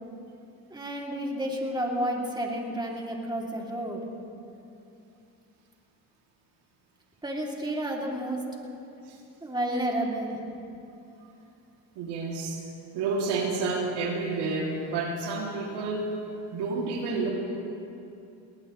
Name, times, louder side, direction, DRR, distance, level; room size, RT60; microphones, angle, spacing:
voice 1, 0.7-4.0 7.2-8.4 9.4-10.4, right 1 dB, 10° right, -1 dB, 2.8 m, -31 dB
voice 2, 12.0-12.6 12.9-16.1 16.5-17.3, right 3 dB, 85° right, -2 dB, 2.8 m, -30 dB
19.5 x 19.0 x 3.2 m, 2.6 s
supercardioid pair, 85°, 40 cm